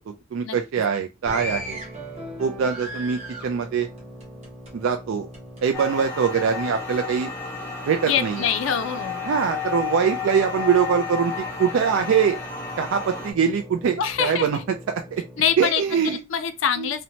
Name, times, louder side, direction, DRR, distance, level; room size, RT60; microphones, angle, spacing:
voice 1, 0.1-1.8 2.4-3.9 4.7-5.3 5.6-7.3 7.9-8.4 9.2-11.3 11.6-12.4 12.8-14.6 14.9-15.2 15.6-16.2 16.8-16.9, right 7 dB, 70° right, 0.3 m, -23 dB
sound 1, 1.2-15.7, equal, 10° right, 1.0 m, -43 dB
sound 2, 1.2-4.9 5.3-6.3 6.9-7.2, equal, 30° right, 0.8 m, -37 dB
sound 3, 5.7-13.3, left 5 dB, 10° left, 0.5 m, -32 dB
voice 2, 8.1-9.3 14.0-14.5 15.4-16.0 16.3-17.0, left 8 dB, 70° left, 0.4 m, -24 dB
2.7 x 2.1 x 2.8 m
head